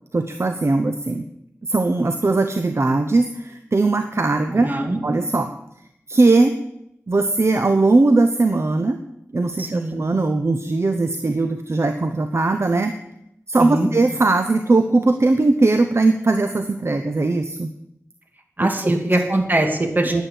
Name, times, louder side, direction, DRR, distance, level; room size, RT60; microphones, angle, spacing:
voice 1, 0.1-1.3 1.7-4.7 5.0-5.5 6.1-6.5 7.1-9.0 9.3-13.0 13.5-17.7 18.6-18.9 20.0-20.2, right 3 dB, 55° right, 7 dB, 0.9 m, -19 dB
voice 2, 4.6-5.0 9.6-9.9 13.6-13.9 18.6-20.2, right 1 dB, 35° right, 4 dB, 2.6 m, -21 dB
10.5 x 10.5 x 7.4 m, 0.80 s
wide cardioid pair, 45°, 5 cm